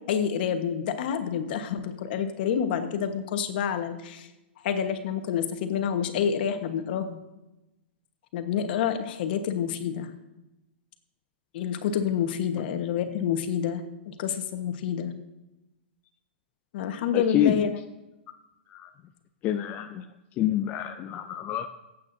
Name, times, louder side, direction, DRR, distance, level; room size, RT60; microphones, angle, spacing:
voice 1, 0.1-4.3 4.6-7.2 8.3-10.1 11.5-15.1 16.7-17.7, left 8 dB, 55° left, 7 dB, 1.3 m, -28 dB
voice 2, 17.1-17.7 18.7-18.9 19.4-20.0 20.4-21.7, left 11 dB, 25° left, 6 dB, 0.5 m, -27 dB
23.5 x 8.5 x 2.7 m, 0.98 s
hypercardioid pair, 140°, 6 cm